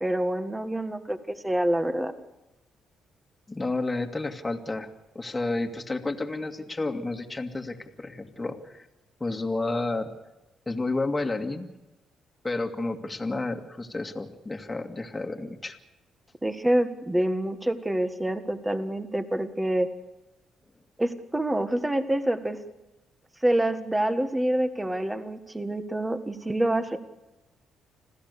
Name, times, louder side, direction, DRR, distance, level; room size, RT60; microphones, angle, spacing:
voice 1, 0.0-2.1 16.4-19.9 21.0-22.6 23.4-27.0, right 1 dB, 10° right, 9 dB, 1.7 m, -26 dB
voice 2, 3.5-4.9 5.1-8.9 9.2-10.1 10.7-11.7 12.4-15.8, left 2 dB, 20° left, 3 dB, 2.1 m, -31 dB
26.5 x 16.0 x 6.8 m, 1.0 s
cardioid pair, 90°, 0 cm